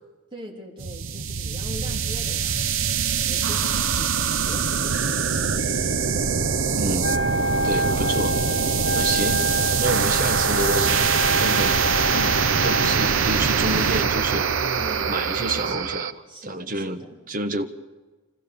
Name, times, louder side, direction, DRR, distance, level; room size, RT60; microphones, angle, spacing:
voice 1, 0.3-6.4 14.8-15.9 16.3-17.2, equal, 25° right, -2 dB, 3.4 m, -42 dB
sound 1, 0.8-16.1, right 6 dB, 70° right, 0.8 m, -23 dB
voice 2, 6.8-7.3 7.6-8.4 8.9-9.4 9.8-11.8 12.1-14.5 15.1-16.1 16.4-17.7, right 2 dB, 40° right, 6 dB, 1.2 m, -28 dB
Wind instrument woodwind instrument, 7.0-13.2, equal, 70° left, 1.6 m, -27 dB
26.5 x 15.0 x 7.0 m, 1.3 s
head